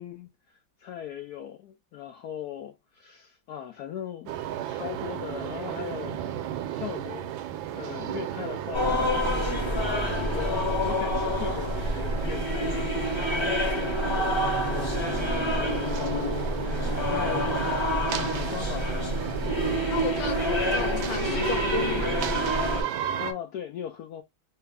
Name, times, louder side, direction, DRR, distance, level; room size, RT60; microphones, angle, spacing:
voice 1, 0.0-6.2 6.7-7.3 7.7-9.2 9.6-16.4 17.1-19.3 23.2-24.2, left 9 dB, 75° left, 0.9 m, -39 dB
sound 1, 4.3-23.3, right 11 dB, 80° right, 1.3 m, -34 dB
sound 2, 8.7-22.8, left 1 dB, 20° left, 0.8 m, -27 dB
voice 2, 19.9-22.2, left 6 dB, 60° left, 0.4 m, -34 dB
3.3 x 2.4 x 3.3 m
omnidirectional pair, 2.1 m